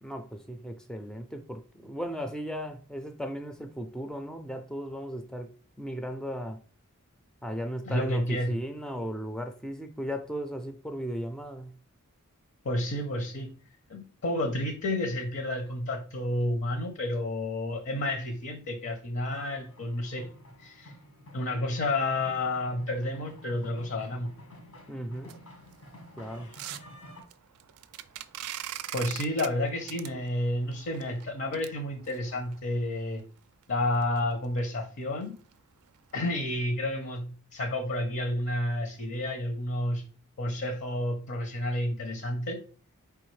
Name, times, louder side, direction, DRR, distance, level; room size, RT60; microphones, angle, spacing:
voice 1, 0.0-5.5 5.8-6.6 7.4-11.7 24.9-25.4 26.2-26.5, equal, 5° left, 0.3 m, -36 dB
voice 2, 7.9-8.5 12.6-13.5 13.9-20.3 20.6-20.9 21.3-24.3 28.9-33.2 33.7-35.4 36.1-40.1 40.4-42.6, left 1 dB, 60° left, 0.6 m, -30 dB
sound 1, 19.3-27.2, equal, 85° left, 1.4 m, -50 dB
sound 2, 25.2-32.6 33.2-33.3 33.6-33.7 34.0-34.2 34.5-34.6 35.0-35.2 35.5-35.6 36.1-36.2, right 12 dB, 90° right, 0.3 m, -42 dB
4.7 x 3.4 x 3.1 m
head